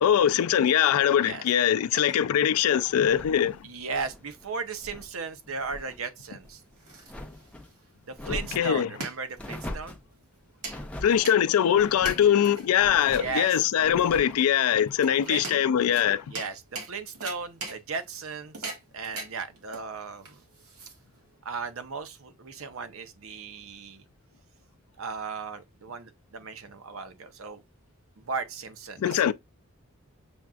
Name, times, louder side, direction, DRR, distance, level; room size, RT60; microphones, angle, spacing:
voice 1, 0.0-3.6 8.3-8.9 11.0-16.2 29.0-29.3, left 9 dB, 85° left, 0.3 m, -22 dB
sound 1, 3.0-5.1 5.4-6.0 6.4-7.7 8.1-8.8 9.4-10.1 10.6-11.2 11.7-12.3 12.7-13.4 13.8-14.4, left 1 dB, 5° left, 0.5 m, -41 dB
voice 2, 3.6-6.6 8.1-10.0 13.1-13.9 15.0-15.5 16.2-20.4 21.4-24.0 25.0-27.6 28.2-29.3, right 4 dB, 70° right, 0.7 m, -36 dB
sound 2, 6.4-21.4, right 3 dB, 85° right, 1.6 m, -42 dB
6.9 x 2.4 x 2.3 m
head